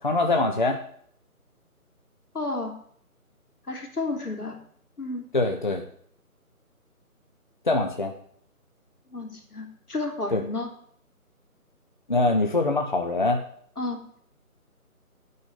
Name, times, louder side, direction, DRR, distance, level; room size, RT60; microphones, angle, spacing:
voice 1, 0.0-0.8 5.3-5.8 7.7-8.1 10.3-10.4 12.1-13.4, left 2 dB, 30° left, 3 dB, 0.9 m, -23 dB
voice 2, 2.3-2.7 3.7-4.6 5.0-5.2 9.1-10.7 13.8-14.0, left 2 dB, 80° left, 3 dB, 3.2 m, -31 dB
9.4 x 6.3 x 8.4 m, 0.62 s
figure-of-eight pair, 160°, 45 cm